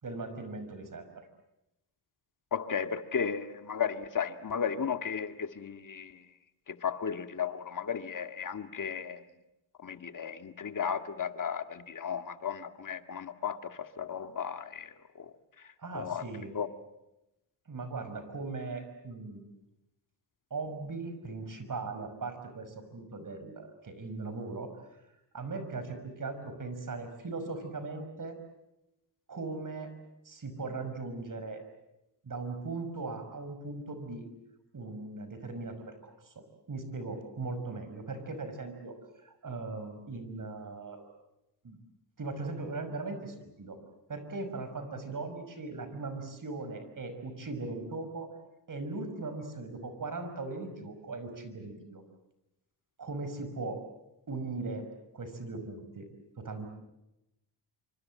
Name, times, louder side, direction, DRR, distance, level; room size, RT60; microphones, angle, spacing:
voice 1, 0.0-1.0 15.8-16.5 17.7-19.5 20.5-24.7 25.3-28.4 29.3-29.9 30.2-31.6 32.2-34.3 34.7-41.1 41.6-41.8 42.2-43.8 44.1-48.3 48.7-52.0 53.0-53.8 54.3-54.8 55.1-56.1 56.4-56.7, right 3 dB, 45° right, 9 dB, 6.1 m, -39 dB
voice 2, 2.5-6.2 6.7-9.2 9.8-15.3 15.9-16.2 16.5-16.7, left 7 dB, 45° left, 8 dB, 2.0 m, -35 dB
27.5 x 25.0 x 7.7 m, 0.91 s
cardioid pair, 85°, 45 cm